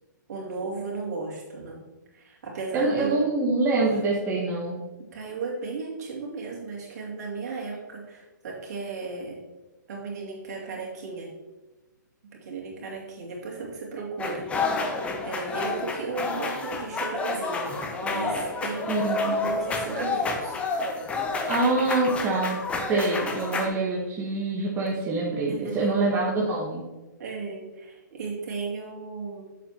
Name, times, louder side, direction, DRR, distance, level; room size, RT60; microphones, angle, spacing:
voice 1, 0.3-3.3 5.1-9.4 9.9-11.4 12.3-21.2 25.5-25.9 27.2-29.4, right 4 dB, 55° right, -2 dB, 2.5 m, -35 dB
voice 2, 2.7-4.8 18.9-19.3 21.5-22.6 22.9-26.8, right 3 dB, 20° right, -4 dB, 1.2 m, -25 dB
sound 1, 14.2-23.7, left 3 dB, 10° left, 0.7 m, -29 dB
7.3 x 7.0 x 2.9 m, 1.1 s
hypercardioid pair, 140°, 10 cm